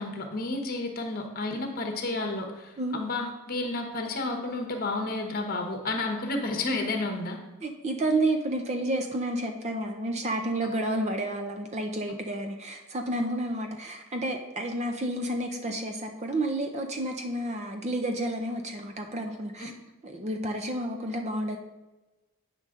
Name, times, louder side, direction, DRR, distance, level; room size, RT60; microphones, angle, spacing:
voice 1, 0.0-7.4 10.6-10.7 19.6-19.7, left 2 dB, 45° left, 4 dB, 1.0 m, -31 dB
voice 2, 7.6-19.7 20.0-21.6, right 1 dB, 30° right, 4 dB, 0.5 m, -30 dB
9.0 x 5.3 x 3.7 m, 1.1 s
head